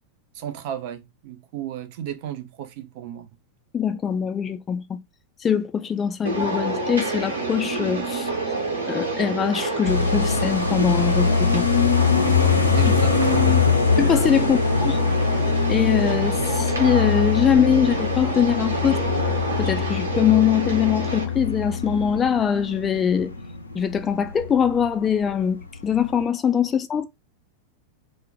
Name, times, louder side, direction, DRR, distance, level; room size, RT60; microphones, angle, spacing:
voice 1, 0.3-3.3 12.8-13.8 14.4-14.5, right 11 dB, 45° right, 0.5 m, -34 dB
voice 2, 3.7-5.0 5.4-8.3 8.9-11.7 14.0-15.0 15.7-19.0 19.6-23.3 23.7-27.0, left 8 dB, 20° left, 0.3 m, -22 dB
sound 1, 6.2-21.2, right 2 dB, 75° right, 0.9 m, -28 dB
sound 2, 9.8-24.9 25.2-25.3 25.6-26.2, left 5 dB, 85° left, 0.4 m, -23 dB
2.1 x 2.1 x 3.8 m
figure-of-eight pair, 90°, 0 cm